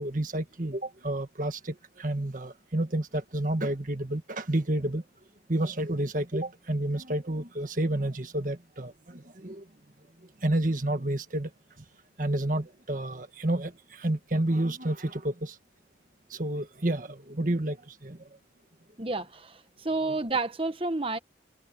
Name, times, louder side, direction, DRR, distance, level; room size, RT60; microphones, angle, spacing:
voice 1, 0.0-5.0 5.5-9.6 10.4-11.5 12.2-15.5 16.3-18.2, right 1 dB, 45° right, 1.7 m, -30 dB
voice 2, 19.0-21.2, right 3 dB, 30° right, 1.2 m, -30 dB
head